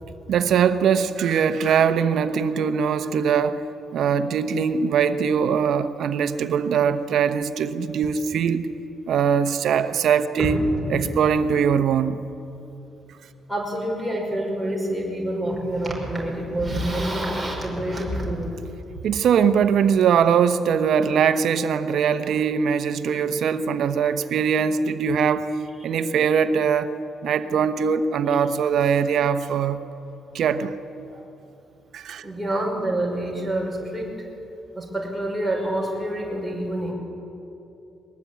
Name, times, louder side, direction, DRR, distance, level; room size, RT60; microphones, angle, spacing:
voice 1, 0.3-3.6 3.9-8.7 9.1-10.6 10.9-12.2 19.0-25.5 25.8-26.9 27.2-29.8 30.3-30.7 31.9-32.3, right 7 dB, 70° right, 10 dB, 1.0 m, -21 dB
voice 2, 13.5-18.6 31.1-31.2 32.2-34.1 34.8-36.9, right 1 dB, ahead, -1 dB, 5.3 m, -27 dB
21.0 x 18.5 x 8.5 m, 2.9 s
cardioid pair, 90°, 0 cm